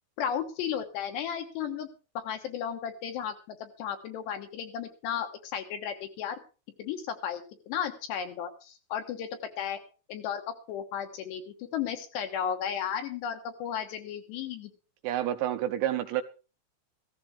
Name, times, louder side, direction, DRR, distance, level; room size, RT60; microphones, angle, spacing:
voice 1, 0.2-1.9 2.1-6.4 6.8-9.3 9.6-9.8 10.1-14.7, left 8 dB, 70° left, 3.1 m, -34 dB
voice 2, 15.0-16.2, right 12 dB, 80° right, 2.9 m, -29 dB
15.5 x 14.5 x 3.5 m
omnidirectional pair, 5.6 m